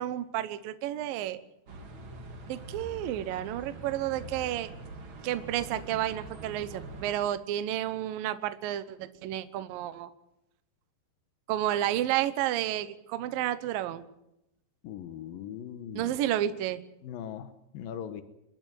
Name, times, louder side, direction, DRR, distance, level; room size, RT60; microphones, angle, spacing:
voice 1, 0.0-1.4 2.5-4.7 5.2-10.1 11.5-14.0 15.9-16.8, right 12 dB, 70° right, 12 dB, 2.3 m, -31 dB
sound 1, 1.7-7.1, right 2 dB, 45° right, 1.7 m, -44 dB
voice 2, 14.8-16.2 17.0-17.5 17.7-18.2, left 9 dB, 70° left, 8 dB, 2.4 m, -39 dB
28.0 x 11.5 x 9.3 m, 0.85 s
omnidirectional pair, 5.1 m